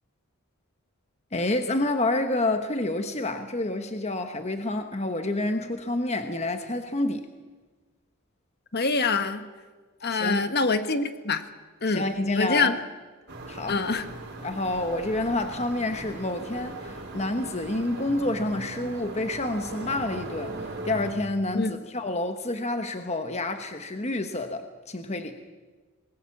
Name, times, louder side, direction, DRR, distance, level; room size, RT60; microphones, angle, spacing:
voice 1, 1.3-7.3 10.1-10.4 11.9-12.7 13.5-13.8 14.4-20.6 20.8-25.4, left 2 dB, 30° left, 7 dB, 1.2 m, -28 dB
voice 2, 8.7-9.5 10.0-11.4 11.8-12.0 12.3-12.8 13.7-14.1 21.5-21.7, left 4 dB, 45° left, 9 dB, 1.4 m, -25 dB
sound 1, 13.3-21.1, right 2 dB, 50° right, 4.8 m, -39 dB
27.0 x 21.0 x 7.3 m, 1.3 s
head